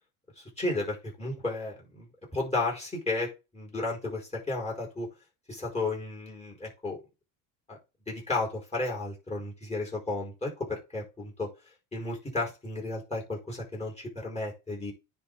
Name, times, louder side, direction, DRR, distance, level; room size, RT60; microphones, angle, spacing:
voice 1, 0.4-2.1 2.3-5.1 5.5-7.0 7.7-7.8 8.1-11.5 11.9-14.9, left 2 dB, 15° left, -3 dB, 4.8 m, -33 dB
10.0 x 3.8 x 3.9 m, 0.27 s
supercardioid pair, 90°, 45 cm